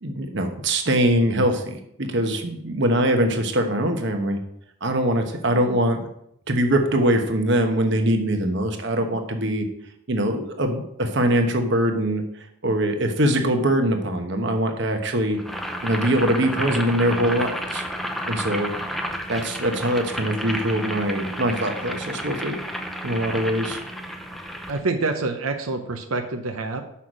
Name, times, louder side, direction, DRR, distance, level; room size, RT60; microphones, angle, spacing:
voice 1, 0.0-4.4 4.8-6.0 6.5-9.7 10.1-12.2 12.6-15.4 15.8-17.8 18.3-18.7 19.3-22.5 23.0-23.8, right 1 dB, 55° right, 5 dB, 1.0 m, -22 dB
Boiling, 15.4-24.8, equal, ahead, 0.5 m, -31 dB
voice 2, 24.7-26.8, right 3 dB, 85° right, 5 dB, 0.7 m, -26 dB
6.2 x 5.7 x 6.4 m, 0.76 s
head